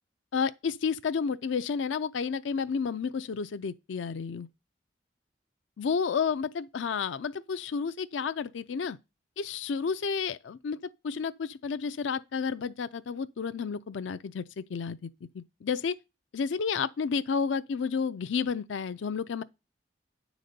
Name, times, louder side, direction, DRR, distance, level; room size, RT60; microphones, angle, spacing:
voice 1, 0.3-4.5 5.8-9.0 9.4-10.8 11.0-15.1 15.3-15.9 16.3-19.4, left 5 dB, 80° left, 0.4 m, -31 dB
9.9 x 4.1 x 6.6 m
head